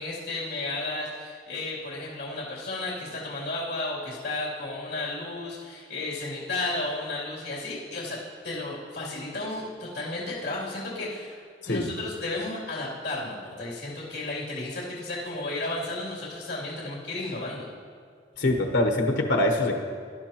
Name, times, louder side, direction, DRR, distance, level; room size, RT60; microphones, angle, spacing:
voice 1, 0.0-17.6, left 2 dB, 65° left, -6 dB, 3.0 m, -33 dB
voice 2, 18.4-19.8, left 1 dB, 85° left, 2 dB, 1.1 m, -24 dB
18.5 x 11.5 x 3.0 m, 2.1 s
head